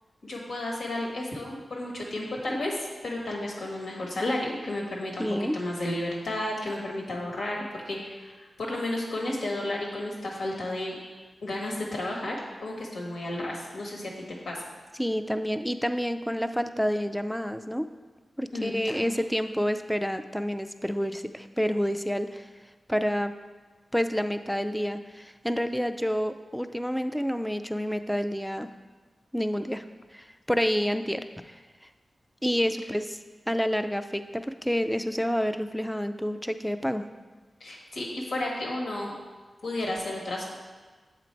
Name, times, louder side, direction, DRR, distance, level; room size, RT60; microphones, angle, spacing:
voice 1, 0.2-5.3 5.5-10.9 11.4-12.4 12.6-14.6 18.5-19.2 37.6-39.1 39.6-40.6, left 1 dB, 85° left, -2 dB, 1.5 m, -32 dB
voice 2, 5.2-5.6 15.0-17.9 18.4-22.5 22.9-23.3 23.9-28.7 29.3-29.8 30.1-31.6 32.4-33.2 33.5-37.1, equal, ahead, 8 dB, 0.3 m, -28 dB
8.2 x 3.9 x 4.5 m, 1.3 s
wide cardioid pair, 75°, 0 cm